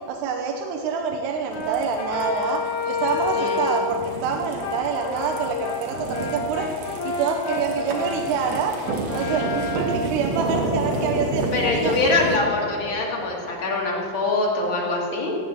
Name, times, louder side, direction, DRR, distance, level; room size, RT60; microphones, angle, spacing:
voice 1, 0.1-8.8 9.1-11.4 11.7-12.0, right 5 dB, 90° right, 3 dB, 2.8 m, -26 dB
Brass instrument, 1.5-4.0 4.6-11.6, left 3 dB, 75° left, 3.5 m, -29 dB
sound 1, 1.5-12.4, right 3 dB, 60° right, 2.0 m, -30 dB
voice 2, 11.5-15.3, left 3 dB, 50° left, -2 dB, 1.5 m, -23 dB
17.0 x 5.9 x 8.0 m, 2.6 s
omnidirectional pair, 4.7 m